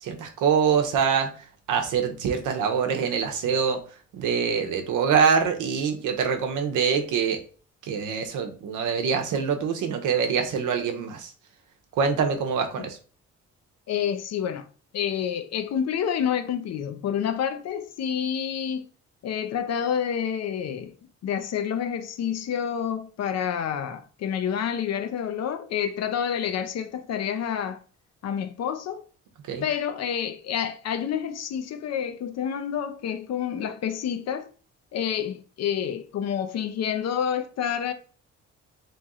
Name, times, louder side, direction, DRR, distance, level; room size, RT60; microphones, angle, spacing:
voice 1, 0.0-1.3 1.7-3.8 4.1-7.4 7.8-11.3 12.0-13.0 29.5-29.6, right 6 dB, 85° right, 0.8 m, -24 dB
voice 2, 13.9-14.7 14.9-18.9 19.2-20.9 21.2-27.8 28.2-29.0 29.6-34.5 34.9-37.9, left 8 dB, 60° left, 0.6 m, -28 dB
3.1 x 3.0 x 3.6 m
cardioid pair, 90°, 30 cm